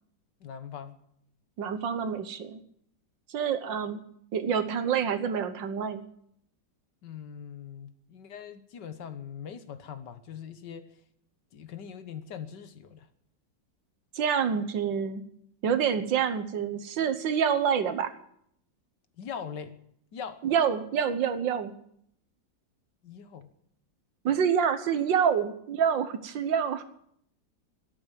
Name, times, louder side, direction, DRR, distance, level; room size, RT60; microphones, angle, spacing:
voice 1, 0.4-1.0 7.0-10.9 11.5-13.1 19.2-19.8 20.1-20.4 23.0-23.5, left 7 dB, 70° left, 11 dB, 1.7 m, -41 dB
voice 2, 1.6-2.6 3.3-4.0 4.3-6.0 14.2-15.2 15.6-18.1 20.4-21.7 24.3-26.8, right 7 dB, 80° right, 10 dB, 1.9 m, -27 dB
13.0 x 10.5 x 9.1 m, 0.70 s
omnidirectional pair, 2.0 m